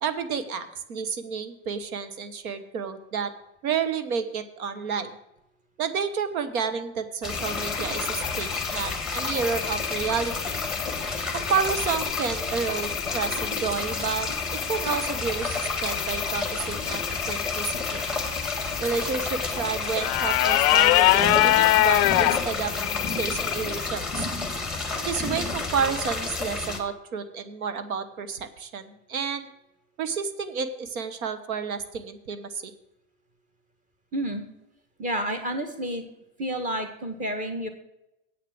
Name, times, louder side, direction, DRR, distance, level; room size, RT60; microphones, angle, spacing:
voice 1, 0.0-3.3 3.6-5.1 5.8-10.6 11.3-18.0 18.8-22.7 23.1-24.3 24.9-29.5 30.0-32.7, right 6 dB, 85° right, 10 dB, 1.2 m, -30 dB
sound 1, 7.2-26.8, left 3 dB, ahead, 1.4 m, -31 dB
sound 2, 7.3-23.9, left 17 dB, 35° left, 0.5 m, -27 dB
voice 2, 34.1-34.4 35.0-36.0 36.4-37.7, equal, 20° right, 6 dB, 1.7 m, -30 dB
8.6 x 6.8 x 7.7 m, 0.87 s
supercardioid pair, 125°, 42 cm